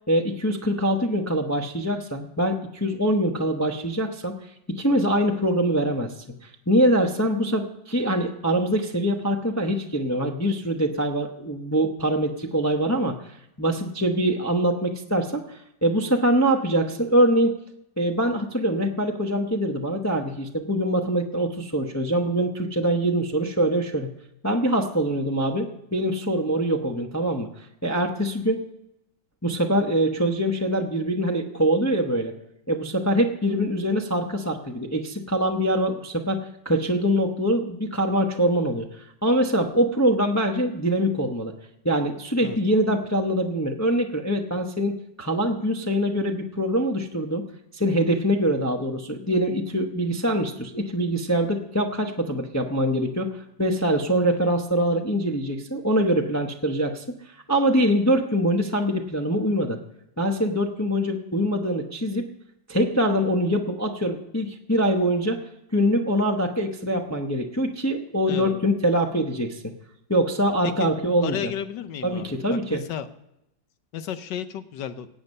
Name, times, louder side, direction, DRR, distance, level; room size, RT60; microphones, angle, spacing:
voice 1, 0.1-4.3 4.7-17.5 18.0-24.1 24.4-27.5 27.8-28.6 29.4-32.3 32.7-41.5 41.8-47.4 47.7-57.1 57.5-59.8 60.2-62.3 62.7-65.4 65.7-69.7 70.1-71.5 72.0-72.8, right 1 dB, 20° left, 3 dB, 0.4 m, -24 dB
voice 2, 68.3-68.7 70.6-70.9 71.2-73.1 73.9-75.1, left 9 dB, 75° left, 11 dB, 1.4 m, -33 dB
18.0 x 8.1 x 5.4 m, 0.84 s
omnidirectional pair, 1.9 m